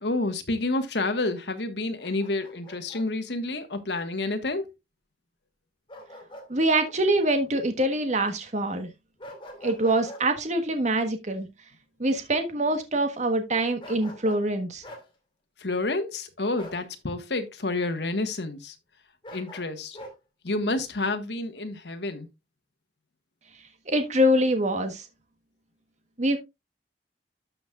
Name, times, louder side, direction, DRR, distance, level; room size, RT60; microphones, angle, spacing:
voice 1, 0.0-4.7 15.6-18.7 19.3-20.0 20.4-22.3, left 2 dB, 75° left, 1.4 m, -29 dB
Bark, 2.0-3.1 5.9-6.5 6.9-7.0 9.2-10.3 13.8-14.5 14.8-15.1 16.6-16.8 19.2-20.2, left 1 dB, 30° left, 2.4 m, -44 dB
voice 2, 6.5-8.9 9.6-11.5 12.0-14.8 23.9-25.0 26.2-26.4, right 1 dB, 45° right, 1.3 m, -24 dB
12.5 x 6.1 x 2.4 m
head